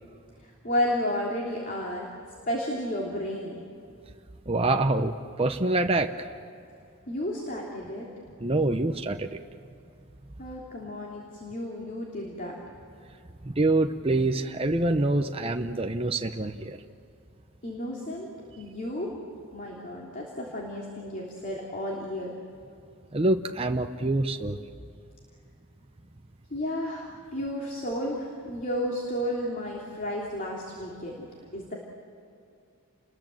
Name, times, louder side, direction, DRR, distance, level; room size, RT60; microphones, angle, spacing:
voice 1, 0.4-2.1 2.5-3.6 7.1-8.1 10.4-12.6 17.6-18.3 18.6-19.1 19.5-22.3 26.5-27.1 27.3-31.3 31.5-31.7, left 1 dB, 40° left, -2 dB, 3.2 m, -32 dB
voice 2, 4.5-6.3 8.4-9.4 13.4-16.8 23.1-24.6, right 2 dB, 25° right, 5 dB, 0.8 m, -26 dB
30.0 x 21.5 x 7.7 m, 2.5 s
head